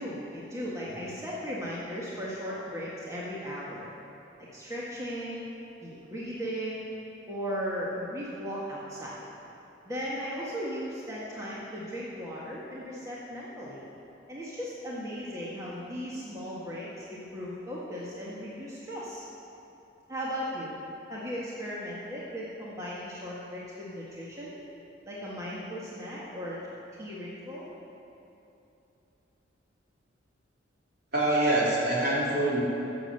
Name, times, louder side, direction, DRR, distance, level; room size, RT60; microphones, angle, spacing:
voice 1, 0.0-3.9 4.5-5.5 5.8-6.9 7.3-9.3 9.8-13.8 14.3-19.3 20.1-20.7 21.1-24.5 25.0-26.6 27.0-27.7, equal, 15° right, -7 dB, 1.7 m, -37 dB
voice 2, 31.1-32.6, right 1 dB, 55° right, -6 dB, 3.7 m, -25 dB
15.0 x 7.2 x 7.9 m, 2.9 s
head